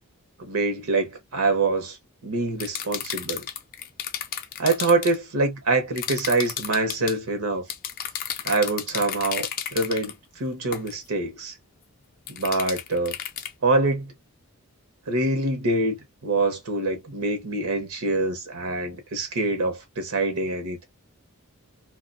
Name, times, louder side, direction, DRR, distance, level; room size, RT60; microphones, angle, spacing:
voice 1, 0.4-2.0 2.2-3.4 4.6-7.6 8.4-11.5 12.3-13.1 13.6-14.1 15.1-16.0 16.2-20.8, right 2 dB, 80° right, 0.8 m, -25 dB
sound 1, 2.6-5.1 6.0-7.2 7.7-10.1 10.7-10.9 12.3-13.5, left 9 dB, 40° left, 0.3 m, -32 dB
2.3 x 2.2 x 2.5 m
head